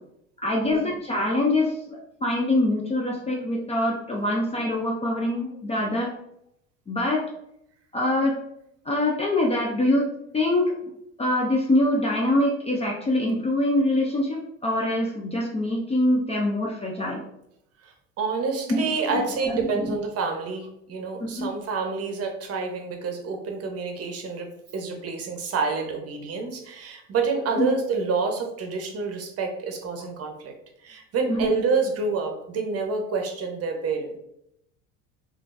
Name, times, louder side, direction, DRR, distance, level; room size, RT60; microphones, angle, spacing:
voice 1, 0.4-6.1 6.9-7.2 7.9-8.4 8.9-10.1 10.3-10.7 11.2-17.3 18.7-18.8 19.1-19.2 19.5-19.6 21.2-21.5 27.6-27.7 31.3-31.5, left 1 dB, 15° left, -1 dB, 0.4 m, -24 dB
voice 2, 17.8-30.5 30.8-34.2, right 4 dB, 40° right, 3 dB, 0.8 m, -28 dB
3.6 x 2.5 x 2.5 m, 0.78 s
hypercardioid pair, 85°, 39 cm